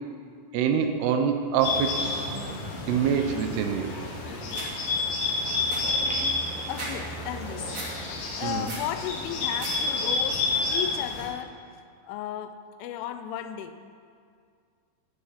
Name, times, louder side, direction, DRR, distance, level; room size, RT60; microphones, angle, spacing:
voice 1, 0.5-2.4 2.9-4.0 8.4-8.7, right 7 dB, 80° right, 6 dB, 2.5 m, -26 dB
Bird, 1.6-11.3, left 3 dB, 60° left, 3.5 m, -30 dB
sound 1, 4.5-4.7 5.2-5.3 5.5-6.9 7.3-7.9 8.3-8.9 9.3-9.7 10.1-10.6, right 2 dB, 35° right, 2.1 m, -38 dB
voice 2, 6.7-7.8 8.4-11.6 12.0-13.8, left 10 dB, 85° left, 10 dB, 3.3 m, -35 dB
15.5 x 10.0 x 5.8 m, 2.2 s
omnidirectional pair, 5.5 m